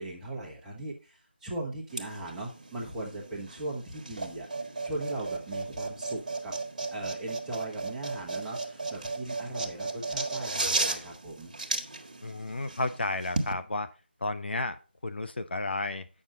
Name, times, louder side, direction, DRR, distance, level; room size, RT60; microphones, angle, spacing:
voice 1, 0.0-4.5 4.8-6.5 6.9-11.5, right 2 dB, 5° right, -4 dB, 1.1 m, -38 dB
sound 1, 1.9-13.5, right 3 dB, 45° right, 1.4 m, -35 dB
voice 2, 12.2-13.9 14.2-16.1, left 2 dB, 65° left, 9 dB, 0.9 m, -32 dB
8.8 x 6.4 x 3.8 m, 0.33 s
figure-of-eight pair, 165°, 6 cm